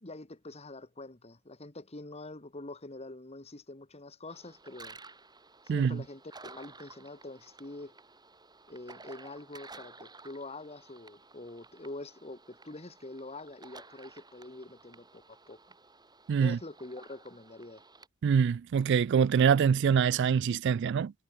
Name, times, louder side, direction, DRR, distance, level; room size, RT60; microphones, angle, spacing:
voice 1, 0.0-5.0 5.6-7.9 8.7-15.6 16.4-17.8, left 2 dB, 30° left, 1.6 m, -45 dB
sound 1, 4.3-18.1, right 3 dB, 20° right, 7.8 m, -54 dB
voice 2, 5.7-6.0 16.3-16.6 18.2-21.1, right 7 dB, 55° right, 0.3 m, -25 dB
head